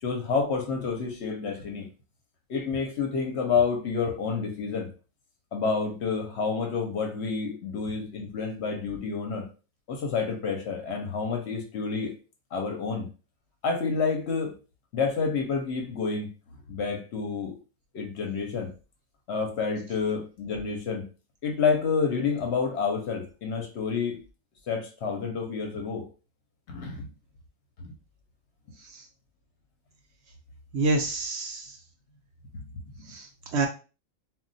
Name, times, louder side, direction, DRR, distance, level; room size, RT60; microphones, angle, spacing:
voice 1, 0.0-1.9 2.5-4.9 5.5-9.5 9.9-12.1 12.5-13.1 13.6-14.6 14.9-16.3 16.7-17.5 17.9-18.7 19.3-21.1 21.4-24.2 24.7-26.1 26.7-27.1 27.8-27.9 32.5-32.6, left 5 dB, 60° left, 0.8 m, -29 dB
voice 2, 30.7-31.8 33.1-33.7, right 3 dB, 65° right, 0.7 m, -28 dB
2.2 x 2.1 x 3.8 m
omnidirectional pair, 1.4 m